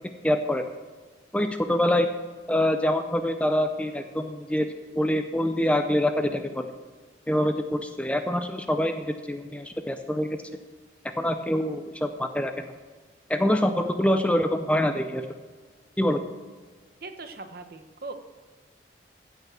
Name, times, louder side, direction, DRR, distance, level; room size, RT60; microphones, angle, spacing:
voice 1, 0.2-0.7 1.3-2.1 2.5-4.7 5.0-6.7 7.3-10.4 11.2-12.6 13.3-15.3 16.0-16.2, left 1 dB, 5° left, 7 dB, 0.5 m, -25 dB
voice 2, 17.0-18.1, right 3 dB, 50° right, 7 dB, 1.0 m, -40 dB
15.0 x 5.7 x 7.4 m, 1.5 s
head